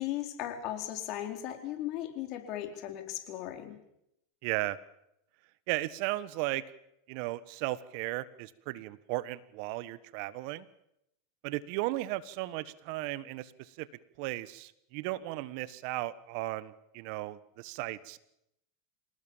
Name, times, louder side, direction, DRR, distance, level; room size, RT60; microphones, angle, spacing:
voice 1, 0.0-3.8, left 12 dB, 50° left, 5 dB, 4.4 m, -37 dB
voice 2, 4.4-4.8 5.7-6.6 7.1-10.6 11.4-13.9 14.2-18.2, right 17 dB, 60° right, 16 dB, 1.4 m, -35 dB
27.0 x 18.5 x 7.3 m, 0.80 s
hypercardioid pair, 95°, 0 cm